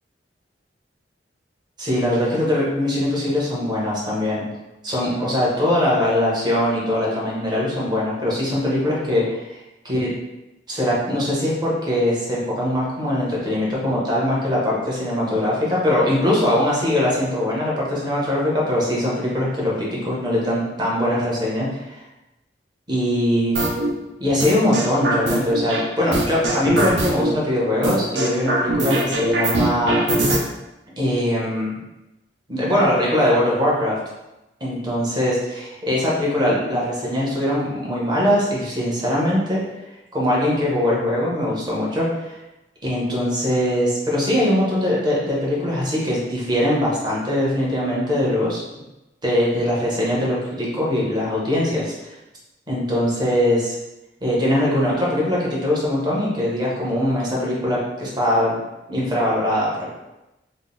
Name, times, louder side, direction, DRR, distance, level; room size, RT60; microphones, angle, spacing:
voice 1, 1.8-4.4 4.8-10.1 10.7-22.0 22.9-23.6 24.2-30.0 31.0-31.8 32.5-34.0 34.6-39.6 40.1-42.3 42.8-48.6 49.2-52.1 52.7-53.7 54.2-58.6 58.9-59.9, left 1 dB, 25° right, -6 dB, 1.0 m, -21 dB
sound 1, 23.6-23.9 24.4-25.8 26.1-27.3 27.8-30.4, right 1 dB, 75° right, 0.6 m, -21 dB
3.8 x 2.0 x 3.8 m, 0.97 s
head